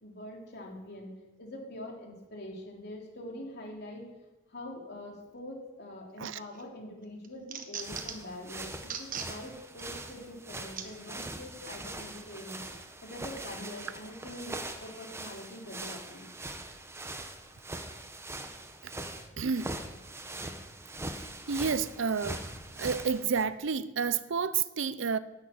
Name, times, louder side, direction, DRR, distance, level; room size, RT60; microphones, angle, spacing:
voice 1, 0.0-4.0 4.5-12.7 13.0-14.5 14.8-16.3, left 1 dB, 55° left, 3.5 m, -44 dB
sound 1, 6.5-6.6 7.0-8.3 8.8-9.3 9.8-9.9 10.8-10.9 11.7-11.8, right 7 dB, 45° right, 1.4 m, -39 dB
sound 2, 7.7-23.4, right 2 dB, 15° right, 1.1 m, -42 dB
voice 2, 19.4-19.7 21.1-22.5 22.8-25.2, right 5 dB, 70° right, 0.6 m, -30 dB
11.0 x 8.9 x 8.7 m
head